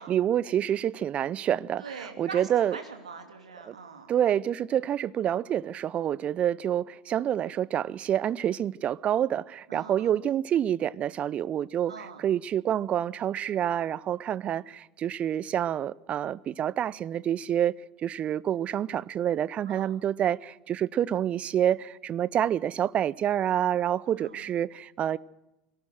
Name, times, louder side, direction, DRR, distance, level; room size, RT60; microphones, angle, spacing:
voice 1, 0.0-2.8 3.6-3.7 4.1-11.9 12.2-17.7 18.0-25.2, right 10 dB, 35° right, 0.6 m, -27 dB
voice 2, 1.8-4.1 9.7-10.1 11.9-12.2 19.7-20.0 24.1-24.5, right 5 dB, 80° right, 2.8 m, -42 dB
22.5 x 18.0 x 6.4 m
figure-of-eight pair, 75°, 4 cm